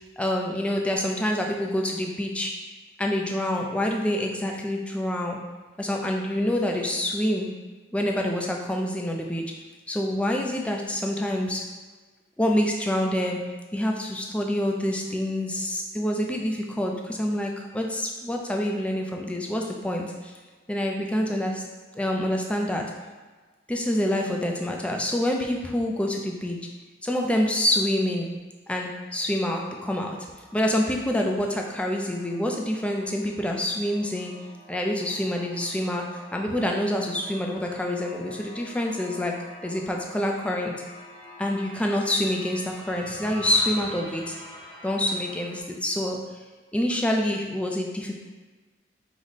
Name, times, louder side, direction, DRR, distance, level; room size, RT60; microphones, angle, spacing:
voice 1, 0.0-2.5 3.0-5.4 5.8-7.5 7.9-9.4 9.9-11.6 12.4-13.4 13.7-20.3 20.7-21.6 21.9-22.8 23.7-26.6 27.0-28.3 28.7-30.2 30.5-34.3 34.7-39.3 39.6-40.8 41.4-44.4 44.8-46.2 46.7-48.2, left 1 dB, 5° left, 1 dB, 0.3 m, -27 dB
sound 1, 29.6-45.6, left 1 dB, 30° left, 0.8 m, -46 dB
4.8 x 2.1 x 3.9 m, 1.3 s
head